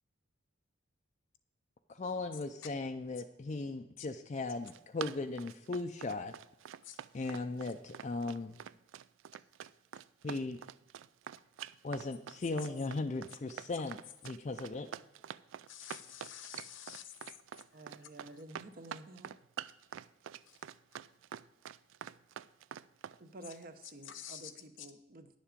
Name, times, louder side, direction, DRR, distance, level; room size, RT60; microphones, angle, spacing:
voice 1, 1.9-6.3 7.1-8.6 10.2-10.6 11.8-14.9, left 3 dB, 35° left, 6 dB, 0.4 m, -37 dB
Run, 4.4-23.2, right 9 dB, 70° right, 0.3 m, -46 dB
voice 2, 15.7-17.4 17.7-18.1 20.5-20.6 24.0-24.5 24.8-24.9, left 10 dB, 75° left, 10 dB, 0.9 m, -49 dB
voice 3, 17.7-19.3 23.2-25.3, right 2 dB, 45° right, 9 dB, 0.8 m, -51 dB
10.5 x 7.3 x 5.0 m, 0.93 s
head